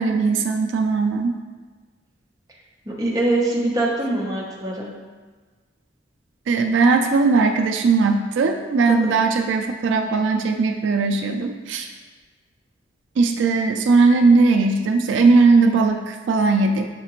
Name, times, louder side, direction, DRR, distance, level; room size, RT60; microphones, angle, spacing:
voice 1, 0.0-1.3 6.5-11.9 13.2-16.9, right 4 dB, 90° right, 5 dB, 0.3 m, -18 dB
voice 2, 2.9-4.9 8.9-9.0, right 2 dB, 20° right, -4 dB, 0.7 m, -23 dB
6.6 x 2.4 x 3.0 m, 1.4 s
head